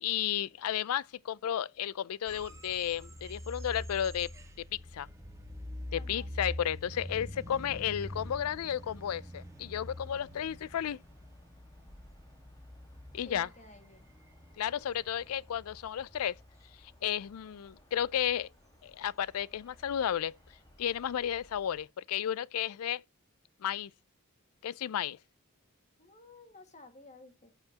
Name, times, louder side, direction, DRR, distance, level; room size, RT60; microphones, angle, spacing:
voice 1, 0.0-4.3 4.7-5.1 5.9-11.0 13.1-13.5 14.6-16.4 17.0-18.5 18.8-20.3 20.8-23.0 23.6-23.9 24.6-25.2, left 10 dB, 80° left, 0.4 m, -33 dB
sound 1, 2.3-21.8, left 1 dB, 15° right, 1.2 m, -46 dB
voice 2, 5.9-6.3 13.2-14.1 26.0-27.5, left 2 dB, 30° left, 1.9 m, -54 dB
sound 2, 8.0-21.6, left 1 dB, 15° left, 1.5 m, -64 dB
14.5 x 5.7 x 2.8 m
head